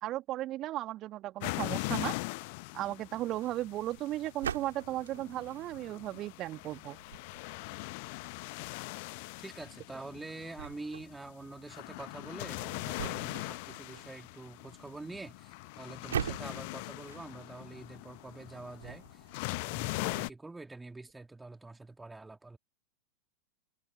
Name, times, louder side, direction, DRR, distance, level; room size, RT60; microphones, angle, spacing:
voice 1, 0.0-2.1 2.7-7.0, right 15 dB, 35° right, 1.6 m, -36 dB
sound 1, 1.4-20.3, left 28 dB, 45° left, 1.0 m, -41 dB
sound 2, 3.3-19.5, right 8 dB, 65° right, 4.4 m, -45 dB
voice 2, 9.4-22.6, right 3 dB, 10° right, 2.8 m, -46 dB
figure-of-eight pair, 90°, 0 cm